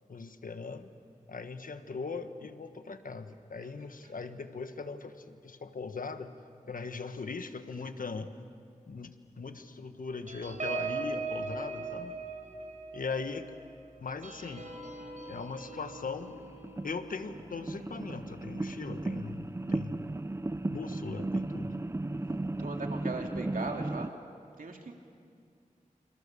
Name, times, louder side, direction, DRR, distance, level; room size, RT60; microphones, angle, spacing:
voice 1, 0.1-0.9 1.3-6.4 6.7-8.3 8.9-12.1 12.9-13.5 14.0-14.7 15.3-16.3 16.8-20.1 20.7-21.7, left 4 dB, 85° left, 8 dB, 1.4 m, -39 dB
sound 1, 10.3-19.2 19.6-19.8 20.1-20.4, right 4 dB, 65° right, 4.4 m, -41 dB
sound 2, 15.4-15.5 16.3-24.1, right 2 dB, 20° right, 0.6 m, -35 dB
voice 2, 22.6-24.1 24.6-24.9, right 3 dB, 85° right, 2 dB, 2.7 m, -38 dB
28.5 x 27.0 x 7.0 m, 2.4 s
wide cardioid pair, 80°, 14 cm